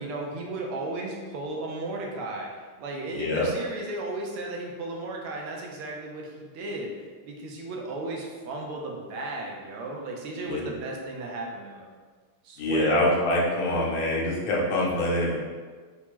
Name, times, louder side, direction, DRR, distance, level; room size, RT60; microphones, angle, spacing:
voice 1, 0.0-2.5 2.8-11.9 12.4-13.0, right 2 dB, 80° right, -1 dB, 1.5 m, -35 dB
voice 2, 3.1-3.5 10.4-10.6 12.6-15.4, left 1 dB, 90° left, -3 dB, 1.7 m, -25 dB
4.6 x 2.2 x 3.0 m, 1.5 s
omnidirectional pair, 2.4 m